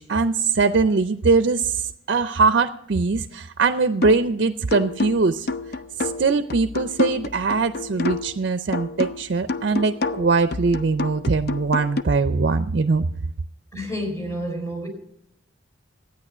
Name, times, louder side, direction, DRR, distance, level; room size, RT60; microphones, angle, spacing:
voice 1, 0.0-5.5 6.0-13.1, right 4 dB, 55° right, 10 dB, 0.5 m, -21 dB
sound 1, 4.0-4.3 4.7-8.4 8.7-12.0, left 3 dB, 55° left, 0.5 m, -28 dB
voice 2, 13.7-14.9, equal, 15° left, 0 dB, 4.3 m, -29 dB
13.0 x 9.4 x 6.2 m, 0.74 s
head